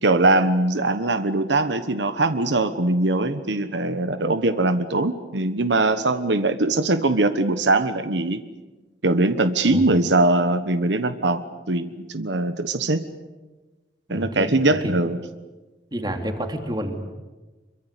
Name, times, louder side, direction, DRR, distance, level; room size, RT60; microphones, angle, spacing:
voice 1, 0.0-8.4 9.0-13.0 14.1-15.2, right 2 dB, 85° right, 10 dB, 1.3 m, -21 dB
voice 2, 14.1-15.0 15.9-17.1, equal, 25° right, 5 dB, 2.8 m, -30 dB
25.5 x 23.5 x 8.3 m, 1.2 s
head